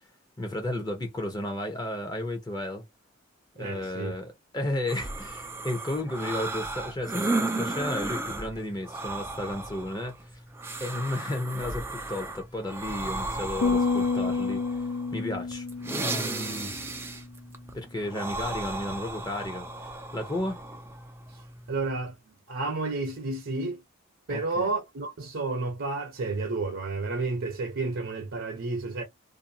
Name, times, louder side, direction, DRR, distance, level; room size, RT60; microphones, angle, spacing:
voice 1, 0.4-2.8 3.6-10.4 10.8-14.6 15.1-16.7 17.7-20.6 24.3-24.7, left 1 dB, 20° left, 0.7 m, -33 dB
voice 2, 3.6-4.1 21.3-21.4 21.7-23.8 24.3-29.0, right 3 dB, 70° right, 0.7 m, -31 dB
sound 1, 4.9-21.9, right 2 dB, 10° right, 0.3 m, -35 dB
sound 2, 13.6-17.0, left 4 dB, 75° left, 0.5 m, -29 dB
2.6 x 2.2 x 2.6 m
head